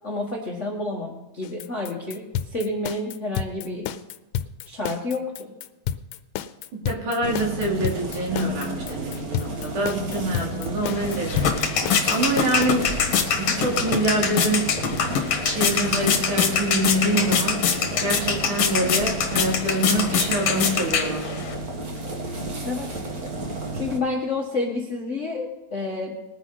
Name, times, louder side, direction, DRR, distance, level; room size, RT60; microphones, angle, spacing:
voice 1, 0.0-3.9 4.6-5.5 12.1-12.3 22.6-22.9 23.7-26.2, left 2 dB, 40° left, -1 dB, 1.0 m, -29 dB
sound 1, 1.4-12.7, left 10 dB, 90° left, 2.2 m, -31 dB
voice 2, 6.9-12.9 13.4-14.7 15.4-21.4, right 1 dB, 70° right, -1 dB, 4.1 m, -26 dB
sound 2, 7.2-24.0, right 2 dB, 40° right, 1.5 m, -32 dB
sound 3, 10.8-21.6, left 6 dB, 60° left, 2.1 m, -24 dB
20.5 x 9.5 x 3.9 m, 1.0 s
omnidirectional pair, 3.7 m